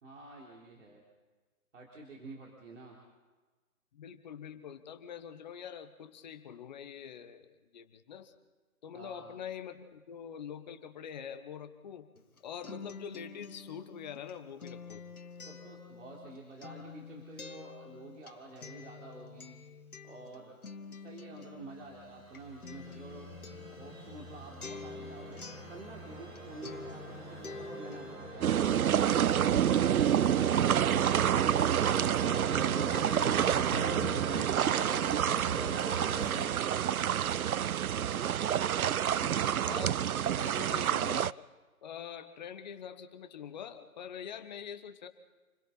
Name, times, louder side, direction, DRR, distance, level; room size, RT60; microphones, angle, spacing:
voice 1, 0.0-1.0 1.7-3.0 8.9-9.3 12.7-12.8 15.5-19.6 20.0-20.6 20.9-23.4 23.7-29.1 39.1-39.5, right 2 dB, 55° right, -2 dB, 3.7 m, -49 dB
voice 2, 3.9-8.3 8.8-12.1 12.4-15.0 39.7-40.0 40.3-41.4 41.8-45.1, left 8 dB, 30° left, 9 dB, 1.2 m, -44 dB
Acoustic guitar, 12.2-26.4 26.6-28.1, left 4 dB, 75° left, 2.0 m, -48 dB
sound 1, 21.8-36.5, right 2 dB, 15° right, 2.5 m, -42 dB
sound 2, 28.4-41.3, right 9 dB, 75° right, 0.5 m, -28 dB
28.5 x 21.5 x 4.2 m, 1.3 s
figure-of-eight pair, 140°, 44 cm